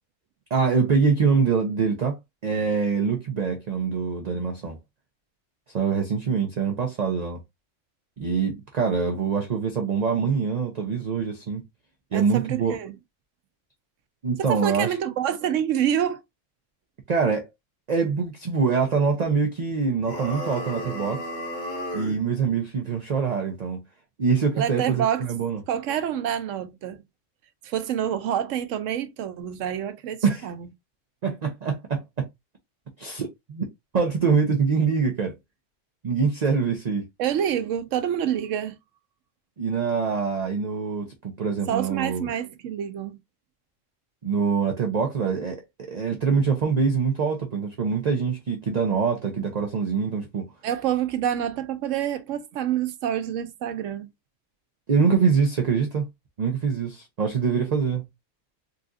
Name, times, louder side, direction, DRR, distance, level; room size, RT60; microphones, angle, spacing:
voice 1, 0.5-2.2 2.4-4.8 5.7-7.4 8.2-11.6 12.1-12.7 14.2-14.9 17.1-17.4 17.9-21.2 21.9-23.8 24.2-25.6 30.2-30.5 31.2-32.3 33.0-33.7 33.9-35.4 36.0-37.1 39.6-42.3 44.2-50.5 54.9-56.1 56.4-58.0, right 5 dB, 45° right, 0.6 m, -24 dB
voice 2, 12.1-13.0 14.4-16.2 24.6-25.3 25.7-27.0 27.6-30.7 37.2-38.8 41.7-43.2 50.6-54.1, right 9 dB, 90° right, 1.0 m, -27 dB
sound 1, 20.0-22.2, equal, 85° left, 2.0 m, -33 dB
4.1 x 2.4 x 2.4 m
omnidirectional pair, 1.3 m